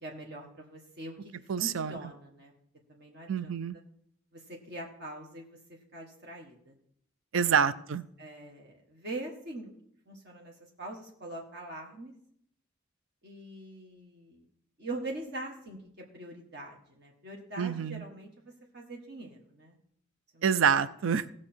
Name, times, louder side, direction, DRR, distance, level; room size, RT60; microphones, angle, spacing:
voice 1, 0.0-2.5 2.9-3.6 4.3-6.8 7.4-7.7 8.2-9.7 10.1-12.1 13.2-14.4 14.8-19.8 20.3-20.5, right 2 dB, 55° right, 0 dB, 1.5 m, -43 dB
voice 2, 1.5-2.0 3.3-3.8 7.3-8.0 17.6-18.0 20.4-21.3, right 7 dB, 80° right, 15 dB, 0.5 m, -27 dB
18.0 x 6.4 x 4.4 m, 0.69 s
head